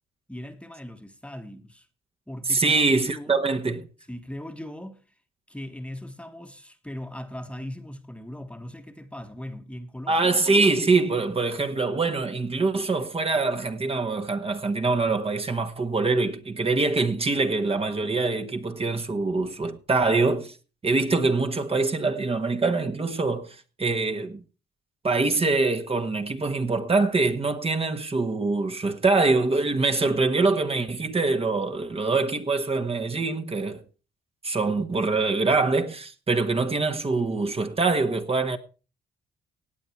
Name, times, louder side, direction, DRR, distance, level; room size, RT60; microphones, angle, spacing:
voice 1, 0.3-1.9 2.3-3.4 4.1-5.0 5.5-10.4, left 1 dB, 5° left, 1.4 m, -39 dB
voice 2, 2.5-3.9 10.1-20.6 20.8-24.4 25.0-33.8 34.4-38.6, right 3 dB, 30° right, 1.5 m, -24 dB
17.5 x 8.4 x 4.6 m
cardioid pair, 90°, 20 cm